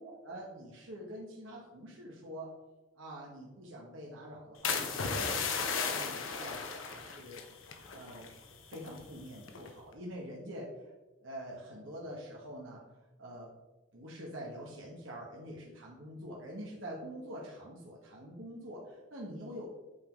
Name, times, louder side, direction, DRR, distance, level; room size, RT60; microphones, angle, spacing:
voice 1, 0.0-2.5 2.9-7.4 7.9-8.3 8.7-10.9 11.2-12.8 13.2-13.5 13.9-19.7, equal, 80° right, -3 dB, 1.2 m, -45 dB
sound 1, 4.6-8.4 8.6-9.0 9.5-9.8, left 5 dB, 90° left, 0.9 m, -35 dB
8.3 x 3.9 x 4.5 m, 1.1 s
head